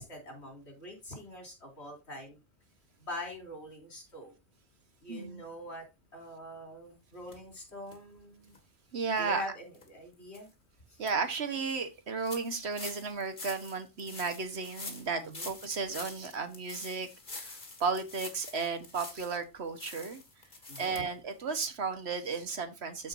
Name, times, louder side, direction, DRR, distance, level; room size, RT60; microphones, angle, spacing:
voice 1, 0.0-2.4 3.0-4.3 5.0-5.9 6.1-8.5 9.2-10.5 10.9-11.0 15.2-15.5 20.7-20.9, left 1 dB, 70° left, 3.7 m, -44 dB
voice 2, 5.1-5.4 8.9-9.4 11.0-17.1 17.3-20.2 20.8-23.1, right 4 dB, 70° right, 1.4 m, -34 dB
sound 1, 7.3-7.4 7.9-8.0 8.5-8.6 9.1-9.2 9.7-9.9 10.3-10.4 10.8-11.1 11.6-11.7 12.2-19.4 19.8-21.0 21.3-21.4 21.6-21.7, left 3 dB, 45° left, 1.8 m, -46 dB
13.0 x 4.5 x 2.6 m
omnidirectional pair, 1.2 m